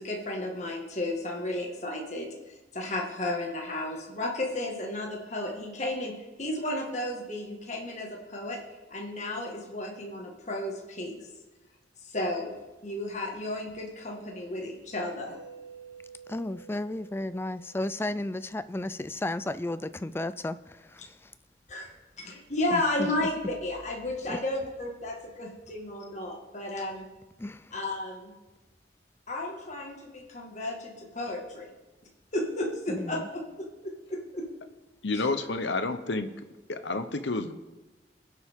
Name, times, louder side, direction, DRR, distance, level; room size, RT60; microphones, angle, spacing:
voice 1, 0.0-6.1 6.4-8.6 8.9-11.2 12.0-12.5 12.8-15.4 21.7-21.9 22.2-27.1 27.7-28.3 29.3-31.7 32.3-33.2 33.6-34.5, left 1 dB, 40° left, 0 dB, 1.8 m, -33 dB
Mallet percussion, 15.3-19.0, right 6 dB, 90° right, 3.4 m, -51 dB
voice 2, 16.3-21.3 22.7-23.1 24.3-24.4 27.4-27.7 32.9-33.3, left 1 dB, 15° left, 14 dB, 0.3 m, -34 dB
voice 3, 35.0-36.3 36.7-37.5, left 3 dB, 85° left, 10 dB, 0.9 m, -29 dB
22.0 x 8.0 x 3.7 m, 1.1 s
head